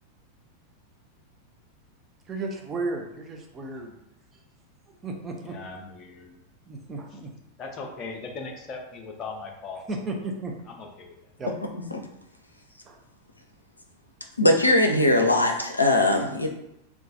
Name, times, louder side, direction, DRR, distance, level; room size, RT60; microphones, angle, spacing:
voice 1, 2.3-3.9 5.0-5.5 6.7-7.3 9.9-10.6 11.4-11.5 12.9-13.0, right 2 dB, 20° right, 1 dB, 0.5 m, -33 dB
voice 2, 5.4-6.3 7.6-9.8 10.7-11.1, left 4 dB, 30° left, 1 dB, 0.5 m, -38 dB
voice 3, 14.4-16.5, left 1 dB, 85° left, 2 dB, 0.4 m, -20 dB
2.3 x 2.3 x 3.8 m, 0.83 s
figure-of-eight pair, 90°, 0 cm